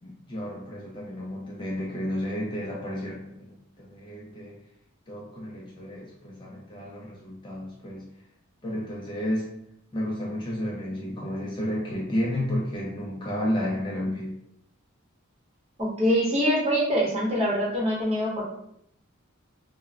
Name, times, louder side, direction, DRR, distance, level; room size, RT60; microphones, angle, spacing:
voice 1, 0.0-4.6 5.1-8.1 8.6-9.5 9.9-14.4, left 1 dB, 20° left, -4 dB, 0.4 m, -32 dB
voice 2, 15.8-18.4, equal, 30° right, -5 dB, 0.8 m, -24 dB
2.2 x 2.0 x 3.4 m, 0.74 s
head